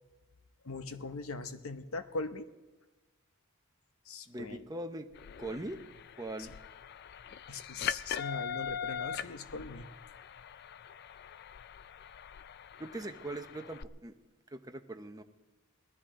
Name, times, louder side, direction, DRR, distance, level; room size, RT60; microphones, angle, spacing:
voice 1, 0.6-2.5 4.1-4.7 6.4-6.5 7.5-9.9, left 3 dB, 75° left, 9 dB, 0.9 m, -40 dB
voice 2, 4.3-5.1 5.4-5.8 6.2-6.6 12.8-14.1 14.5-15.2, right 1 dB, 20° right, 6 dB, 0.8 m, -41 dB
sound 1, 5.1-13.8, left 8 dB, 50° left, 0.4 m, -42 dB
20.0 x 13.5 x 3.8 m, 1.2 s
head